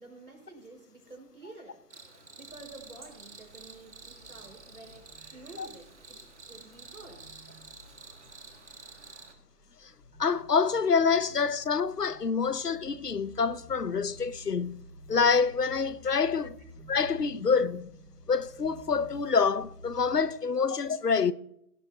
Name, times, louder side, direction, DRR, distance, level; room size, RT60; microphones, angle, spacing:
voice 1, 0.0-1.8 2.2-5.1 5.3-6.2 6.5-7.3 16.6-16.7, right 2 dB, 70° right, 5.4 m, -50 dB
Cricket, 1.9-9.3, right 4 dB, 50° right, 1.9 m, -50 dB
sound 1, 2.5-20.2, equal, 5° left, 1.9 m, -52 dB
voice 2, 10.2-16.6 16.9-17.9 18.3-21.3, left 5 dB, 85° left, 0.9 m, -27 dB
17.0 x 13.0 x 2.8 m
figure-of-eight pair, 155°, 46 cm